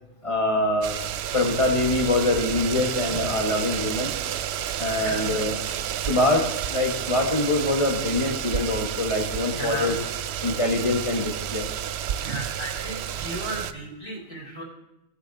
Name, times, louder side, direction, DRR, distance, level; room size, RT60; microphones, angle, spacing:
voice 1, 0.2-0.9 1.3-4.1 4.8-5.6 6.1-9.9 10.4-11.7, left 2 dB, 25° left, 3 dB, 1.5 m, -24 dB
sound 1, 0.8-13.7, right 10 dB, 65° right, 0.7 m, -30 dB
voice 2, 5.0-5.4 9.5-10.0 12.2-14.6, equal, 50° left, -3 dB, 4.0 m, -35 dB
19.0 x 6.9 x 4.1 m, 0.94 s
omnidirectional pair, 1.3 m